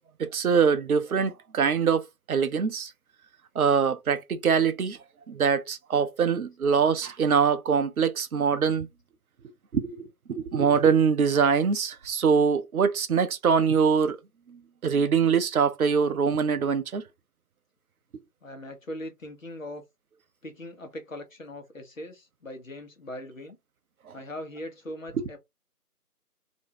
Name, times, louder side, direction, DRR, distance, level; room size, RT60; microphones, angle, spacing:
voice 1, 0.2-2.9 3.6-5.0 5.3-8.9 9.7-14.2 14.8-17.0, right 6 dB, 65° right, 0.5 m, -23 dB
voice 2, 18.4-19.8 20.4-23.6 24.1-25.4, left 1 dB, 55° left, 0.7 m, -40 dB
2.5 x 2.1 x 2.7 m
figure-of-eight pair, 175°, 47 cm